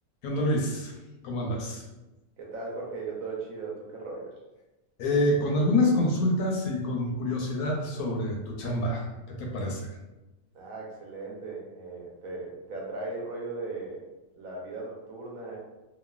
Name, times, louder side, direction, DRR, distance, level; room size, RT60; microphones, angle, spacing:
voice 1, 0.2-1.0 1.2-1.8 5.0-10.0, left 1 dB, 75° left, 0 dB, 1.0 m, -27 dB
voice 2, 2.4-4.3 10.5-14.0 14.4-15.6, right 3 dB, 70° right, -2 dB, 1.0 m, -37 dB
3.0 x 2.1 x 2.2 m, 1.0 s
omnidirectional pair, 1.6 m